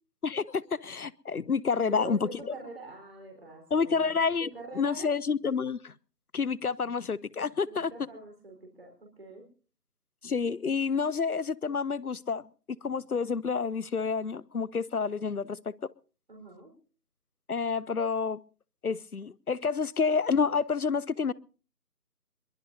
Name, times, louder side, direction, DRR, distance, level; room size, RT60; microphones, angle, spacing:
voice 1, 0.2-2.3 3.7-4.5 4.7-5.9 6.3-7.9 10.2-12.5 12.8-15.6 17.5-18.4 18.8-21.3, left 5 dB, 65° left, 0.7 m, -29 dB
voice 2, 1.7-4.1 4.4-5.1 7.6-9.5 16.3-16.7, right 2 dB, 40° right, 4.5 m, -44 dB
23.5 x 22.5 x 2.7 m
figure-of-eight pair, 165°, 48 cm